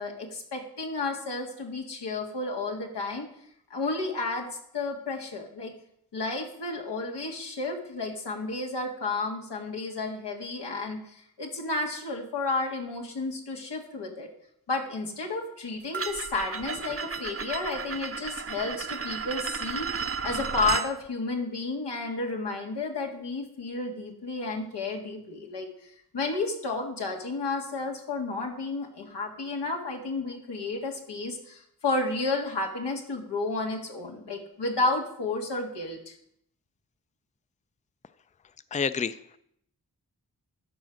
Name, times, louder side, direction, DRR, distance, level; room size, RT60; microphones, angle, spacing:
voice 1, 0.0-3.3 3.7-4.5 4.7-5.7 6.1-14.3 14.7-36.2, left 3 dB, 85° left, 1 dB, 1.8 m, -32 dB
sound 1, 15.9-20.9, right 5 dB, 35° right, 0.7 m, -33 dB
voice 2, 38.7-39.4, left 6 dB, 20° left, 13 dB, 0.5 m, -29 dB
12.0 x 4.8 x 6.3 m, 0.71 s
cardioid pair, 45°, 40 cm